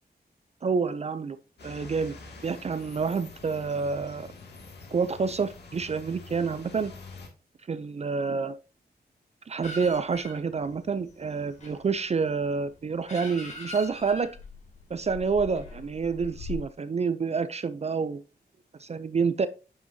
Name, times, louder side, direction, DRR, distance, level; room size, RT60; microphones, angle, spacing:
voice 1, 0.6-1.4 1.6-2.1 2.4-4.3 4.9-6.9 7.7-8.6 9.5-14.3 14.9-18.2 18.8-19.5, right 5 dB, 40° right, 0.5 m, -28 dB
sound 1, 1.6-7.3, left 3 dB, 85° left, 2.3 m, -46 dB
sound 2, 9.6-16.6, left 3 dB, 45° left, 3.8 m, -43 dB
9.4 x 6.0 x 2.7 m
wide cardioid pair, 165°, 17 cm